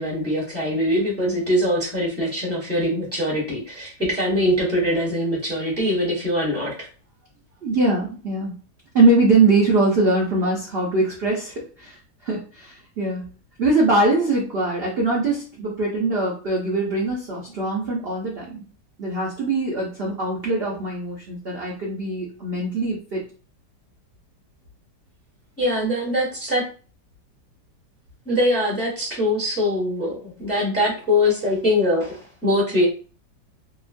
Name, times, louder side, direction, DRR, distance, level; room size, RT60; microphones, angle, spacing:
voice 1, 0.0-6.7 25.6-26.6 28.3-32.9, left 1 dB, 10° left, -5 dB, 0.7 m, -22 dB
voice 2, 7.6-8.6 8.9-12.0 12.2-13.2 13.6-18.6 19.0-23.2, right 2 dB, 75° right, -4 dB, 0.5 m, -22 dB
2.9 x 2.3 x 2.4 m, 0.39 s
omnidirectional pair, 1.9 m